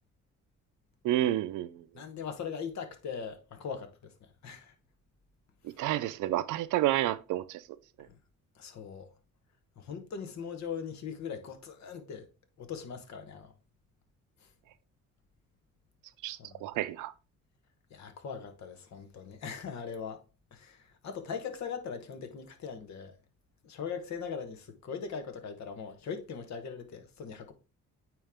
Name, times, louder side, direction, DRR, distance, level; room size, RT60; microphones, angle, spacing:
voice 1, 1.0-1.8 5.6-7.6 16.2-17.1, right 14 dB, 90° right, 0.6 m, -30 dB
voice 2, 1.9-4.7 8.1-8.2 8.6-9.1 9.8-12.3 12.6-13.5 14.4-14.5 16.4-16.7 17.9-20.2 20.5-23.2 23.6-27.5, left 6 dB, 65° left, 1.2 m, -40 dB
8.9 x 3.1 x 3.6 m
cardioid pair, 90°, 30 cm